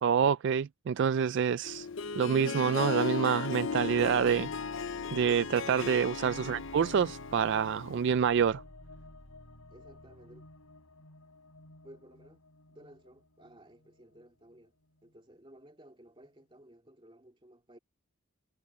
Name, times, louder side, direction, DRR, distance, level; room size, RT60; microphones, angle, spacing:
voice 1, 0.0-1.9 2.2-4.5 5.1-8.6, right 7 dB, 55° right, 0.3 m, -27 dB
Harp, 1.6-8.2, left 5 dB, 60° left, 0.7 m, -36 dB
sound 1, 3.6-14.6, left 1 dB, 85° left, 6.3 m, -51 dB
voice 2, 9.7-10.4 11.8-12.4 12.7-14.7 15.0-17.8, right 1 dB, 25° right, 2.5 m, -55 dB
head